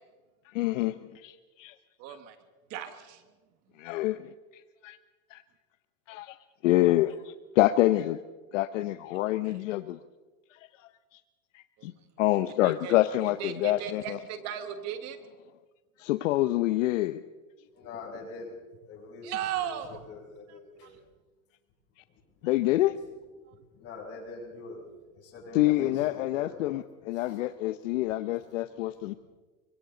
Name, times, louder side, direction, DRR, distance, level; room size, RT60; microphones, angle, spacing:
voice 1, 0.5-1.7 2.1-2.2 3.8-4.3 4.8-5.0 5.3-5.4 6.1-6.4 6.6-8.2 8.5-10.0 11.5-11.9 12.2-14.2 16.0-17.2 22.4-22.9 25.5-29.1, left 16 dB, 65° left, 12 dB, 0.9 m, -27 dB
voice 2, 2.0-2.4 2.7-3.2 9.4-9.5 11.8-11.9 12.6-13.0 13.4-15.2 19.2-20.0 20.5-20.9 23.5-23.6, right 10 dB, 40° right, 9 dB, 1.6 m, -36 dB
voice 3, 17.7-18.6 18.9-21.0 23.7-24.9 25.1-26.6 27.1-27.4 28.3-28.4, left 3 dB, 35° left, -2 dB, 7.5 m, -44 dB
28.0 x 24.5 x 3.9 m, 1.3 s
supercardioid pair, 135°, 41 cm